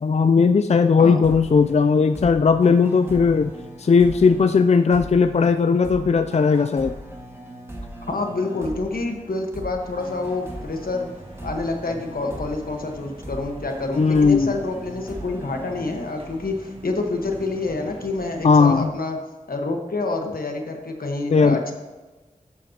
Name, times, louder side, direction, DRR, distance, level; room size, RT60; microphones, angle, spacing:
voice 1, 0.0-3.5 3.8-6.9 14.0-14.5 18.4-18.9 21.3-21.6, left 5 dB, 50° left, 9 dB, 0.4 m, -17 dB
sound 1, 1.2-16.7, right 1 dB, 15° right, 2.0 m, -39 dB
voice 2, 8.1-11.1 11.4-19.2 19.5-21.7, left 3 dB, 85° left, 3 dB, 1.3 m, -27 dB
sound 2, 9.8-18.9, right 1 dB, 40° right, 1.8 m, -44 dB
12.0 x 8.4 x 2.9 m, 1.2 s
wide cardioid pair, 60°, 15 cm